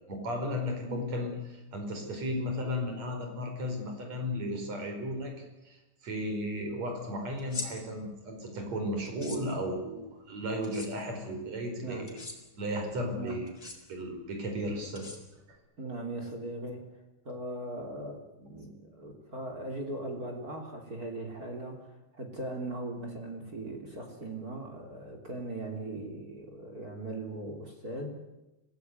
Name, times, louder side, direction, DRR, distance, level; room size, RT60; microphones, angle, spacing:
voice 1, 0.1-5.3 5.6-12.2 12.6-13.5 13.9-15.1, equal, 55° right, 4 dB, 6.2 m, -34 dB
sound 1, 7.4-7.7 9.0-9.4 10.6-10.9 12.1-12.4 13.5-13.8 14.9-15.5, left 3 dB, 30° left, 4.5 m, -40 dB
voice 2, 15.8-16.8 17.2-21.9 22.1-28.1, right 2 dB, 30° right, 2 dB, 3.5 m, -39 dB
25.5 x 17.0 x 9.5 m, 1.0 s
omnidirectional pair, 3.6 m